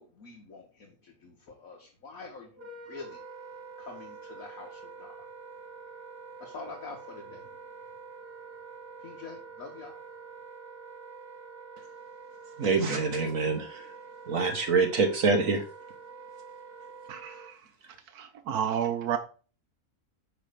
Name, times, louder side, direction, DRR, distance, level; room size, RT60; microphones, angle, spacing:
voice 1, 0.0-3.2 3.8-5.2 6.4-7.5 9.0-10.0, left 4 dB, 65° left, 1.9 m, -46 dB
Wind instrument woodwind instrument, 2.5-17.5, right 5 dB, 40° right, 1.9 m, -46 dB
voice 2, 12.6-13.8 14.3-15.6, right 4 dB, 60° right, 1.5 m, -25 dB
voice 3, 17.1-17.6 18.1-19.2, right 8 dB, 80° right, 1.2 m, -31 dB
9.6 x 3.4 x 6.7 m
omnidirectional pair, 1.6 m